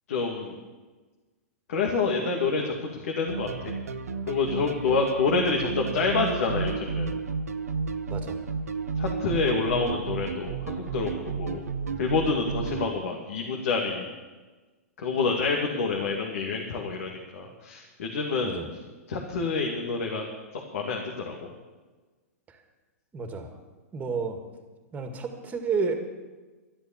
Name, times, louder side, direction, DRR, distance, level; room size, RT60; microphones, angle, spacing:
voice 1, 0.1-0.5 1.7-2.7 3.0-3.7 4.3-7.2 9.0-11.6 12.0-14.1 15.0-18.5 19.1-20.2 20.7-21.5, left 4 dB, 70° left, 0 dB, 2.3 m, -27 dB
sound 1, 3.3-12.9, right 5 dB, 90° right, 0.9 m, -32 dB
voice 2, 23.1-23.5 23.9-24.4 24.9-25.9, right 5 dB, 20° right, 6 dB, 2.1 m, -31 dB
12.5 x 11.0 x 7.3 m, 1.3 s
hypercardioid pair, 120°, 8 cm